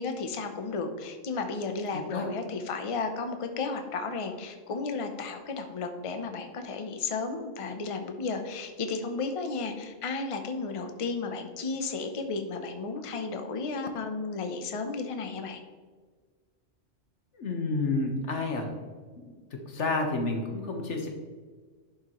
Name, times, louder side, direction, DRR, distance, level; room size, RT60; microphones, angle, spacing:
voice 1, 0.0-15.6, left 4 dB, 35° left, 6 dB, 0.6 m, -33 dB
voice 2, 17.4-18.7 19.5-21.1, left 3 dB, 65° left, 2 dB, 1.4 m, -30 dB
11.0 x 5.6 x 3.1 m, 1.5 s
omnidirectional pair, 1.3 m